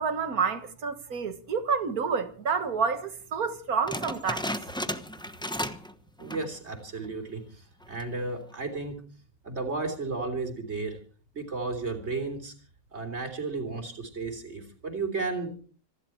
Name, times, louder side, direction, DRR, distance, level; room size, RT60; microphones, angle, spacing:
voice 1, 0.0-4.5, right 5 dB, 80° right, 2.1 m, -29 dB
sound 1, 3.9-5.9 6.2-6.6 7.0-7.1 7.8-8.2, equal, 5° left, 0.9 m, -34 dB
voice 2, 6.2-9.0 9.4-11.0 11.3-12.5 12.9-15.6, right 3 dB, 45° right, 3.8 m, -33 dB
26.0 x 11.5 x 4.5 m
omnidirectional pair, 1.5 m